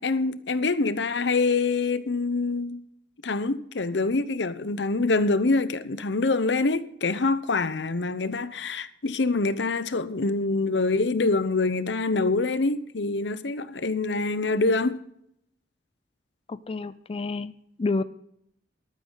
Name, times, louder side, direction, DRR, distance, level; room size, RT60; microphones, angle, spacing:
voice 1, 0.0-2.8 3.2-15.0, left 3 dB, 80° left, 0.8 m, -25 dB
voice 2, 16.5-17.5 17.8-18.0, left 3 dB, 30° left, 0.4 m, -29 dB
13.5 x 12.5 x 3.9 m
head